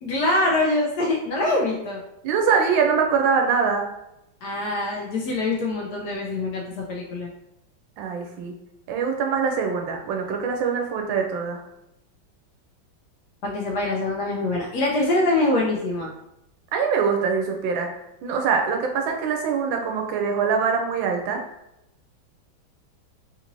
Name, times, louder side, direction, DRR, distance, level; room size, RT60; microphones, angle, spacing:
voice 1, 0.0-2.0 4.4-7.3 13.4-16.1, left 2 dB, 70° left, -1 dB, 1.0 m, -24 dB
voice 2, 2.2-3.9 8.0-8.5 8.9-11.6 16.7-17.9 18.2-21.4, right 6 dB, 85° right, 3 dB, 1.3 m, -23 dB
3.7 x 2.6 x 2.9 m, 0.85 s
omnidirectional pair, 2.1 m